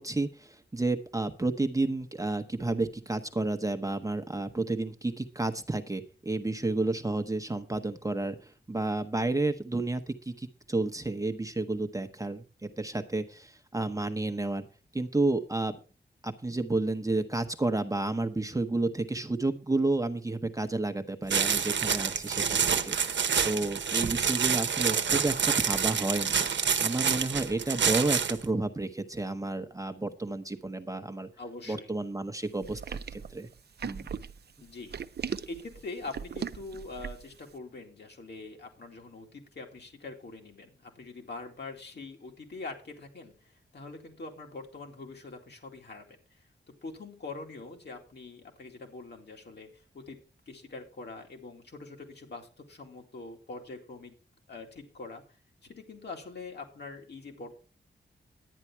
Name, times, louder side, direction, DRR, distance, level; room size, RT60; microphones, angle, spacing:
voice 1, 0.0-14.6 14.9-15.8 16.2-23.2 23.4-31.3 31.7-33.5 33.8-34.1, right 2 dB, 20° right, 7 dB, 0.9 m, -31 dB
sound 1, 21.3-28.4, right 6 dB, 80° right, 0.9 m, -27 dB
voice 2, 31.4-31.9 34.6-34.9 35.4-46.4 46.8-50.2 50.5-54.1 54.5-55.2 55.6-57.6, left 3 dB, 65° left, 2 dB, 2.5 m, -44 dB
sound 2, 32.6-37.4, right 7 dB, 60° right, 0.5 m, -38 dB
11.0 x 9.7 x 4.5 m, 0.35 s
wide cardioid pair, 140°, 19 cm